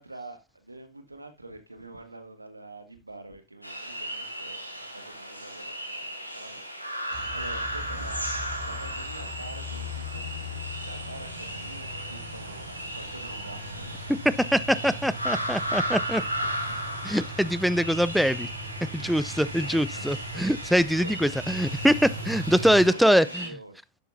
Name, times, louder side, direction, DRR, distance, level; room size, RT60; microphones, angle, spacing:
voice 1, 0.0-14.0 16.7-17.1 19.0-19.3 19.6-20.4 20.9-21.6 22.8-23.8, right 2 dB, 85° right, 1.6 m, -46 dB
sound 1, 3.6-23.5, equal, 90° left, 2.2 m, -35 dB
sound 2, 7.1-22.9, equal, 55° right, 3.0 m, -39 dB
voice 2, 14.4-16.2 17.0-18.5 18.9-23.5, equal, ahead, 0.4 m, -23 dB
11.5 x 8.1 x 2.6 m
figure-of-eight pair, 90°, 0 cm